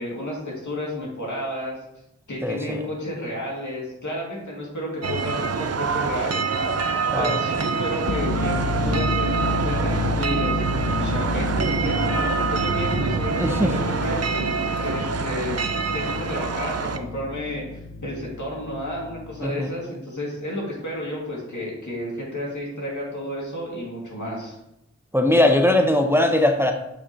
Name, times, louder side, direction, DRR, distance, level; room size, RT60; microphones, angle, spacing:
voice 1, 0.0-1.8 2.3-10.6 11.0-14.2 14.8-15.6 15.9-24.6, left 1 dB, 85° left, -4 dB, 2.2 m, -31 dB
voice 2, 2.4-2.8 7.1-7.4 13.3-13.7 19.4-19.7 25.1-26.7, left 1 dB, 10° right, 4 dB, 0.6 m, -20 dB
sound 1, 5.0-17.0, right 5 dB, 60° right, 0.5 m, -26 dB
sound 2, 8.1-19.5, left 3 dB, 50° left, 0.6 m, -30 dB
8.5 x 4.9 x 2.9 m, 0.86 s
wide cardioid pair, 65°, 29 cm